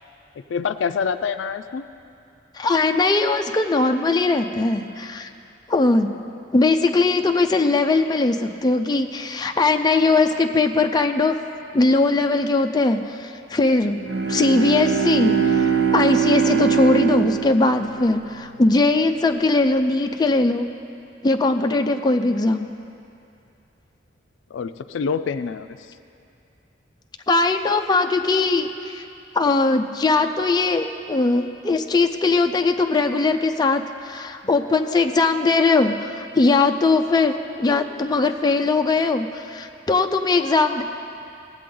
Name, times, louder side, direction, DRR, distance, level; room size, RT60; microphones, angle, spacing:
voice 1, 0.5-1.8 24.5-25.8, left 6 dB, 85° left, 11 dB, 0.4 m, -26 dB
voice 2, 2.6-5.3 5.7-6.1 6.5-11.3 11.7-14.0 14.3-20.6 21.2-22.7 27.3-29.0 29.3-40.8, left 3 dB, 20° left, 5 dB, 0.4 m, -20 dB
Bowed string instrument, 14.0-18.8, right 6 dB, 60° right, 0.7 m, -22 dB
18.0 x 7.7 x 3.8 m, 2.6 s
head